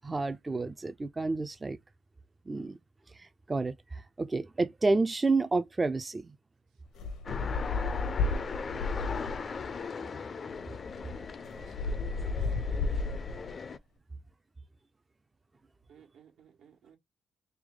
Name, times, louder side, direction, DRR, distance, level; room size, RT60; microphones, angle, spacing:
voice 1, 0.0-1.8 2.5-2.8 3.2-6.3, right 3 dB, 25° right, 0.4 m, -30 dB
sound 1, 7.0-9.5 10.5-10.6 10.9-13.5, left 3 dB, 85° left, 0.8 m, -33 dB
sound 2, 7.2-13.8, left 5 dB, 40° left, 0.4 m, -38 dB
voice 2, 11.2-13.1 15.9-17.0, right 7 dB, 85° right, 1.3 m, -59 dB
3.4 x 3.1 x 3.6 m
cardioid pair, 90°, 0 cm